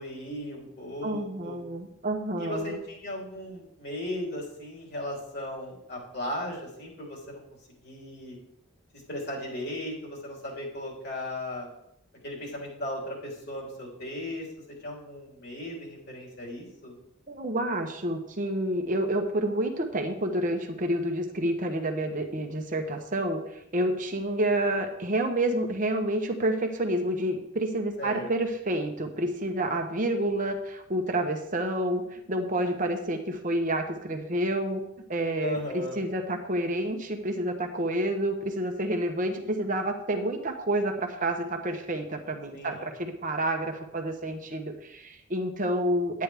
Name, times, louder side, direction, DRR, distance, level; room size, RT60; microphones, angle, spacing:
voice 1, 0.0-1.6 2.4-7.4 7.8-8.4 8.9-11.7 12.2-14.5 14.8-16.9 28.0-28.3 35.4-36.0 42.5-42.8, left 1 dB, 50° left, -2 dB, 3.3 m, -36 dB
voice 2, 1.0-2.8 17.3-23.4 23.7-34.8 35.1-46.2, right 1 dB, 40° right, 4 dB, 0.9 m, -29 dB
10.5 x 9.4 x 3.4 m, 0.78 s
head